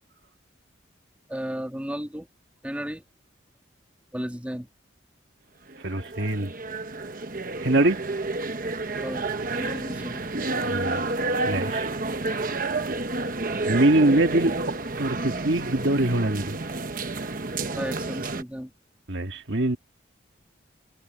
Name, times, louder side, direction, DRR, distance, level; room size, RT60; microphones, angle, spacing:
voice 1, 1.3-2.3 2.6-3.0 4.1-4.7 9.0-9.3 9.6-10.3 17.8-18.7, equal, 5° right, 2.4 m, -34 dB
sound 1, 5.7-18.4, right 3 dB, 45° right, 1.1 m, -30 dB
voice 2, 5.8-6.5 7.6-8.0 10.6-11.0 11.4-11.9 13.6-14.5 15.0-16.6 19.1-19.8, right 1 dB, 65° right, 1.7 m, -23 dB
head